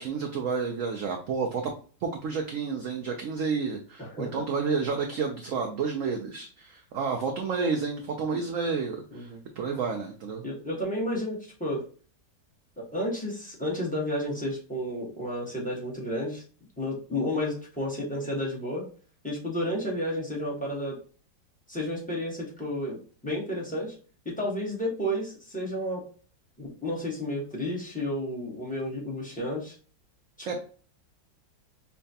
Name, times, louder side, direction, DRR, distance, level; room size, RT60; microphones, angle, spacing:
voice 1, 0.0-1.7 2.0-10.4 30.4-30.5, right 5 dB, 75° right, 4 dB, 0.7 m, -30 dB
voice 2, 4.0-4.4 9.1-9.4 10.4-11.8 12.8-16.4 16.8-18.9 19.2-21.0 21.7-23.9 24.2-26.0 26.6-29.7 30.4-30.5, left 1 dB, 5° left, -4 dB, 0.8 m, -31 dB
5.6 x 2.2 x 2.7 m, 0.41 s
omnidirectional pair, 1.9 m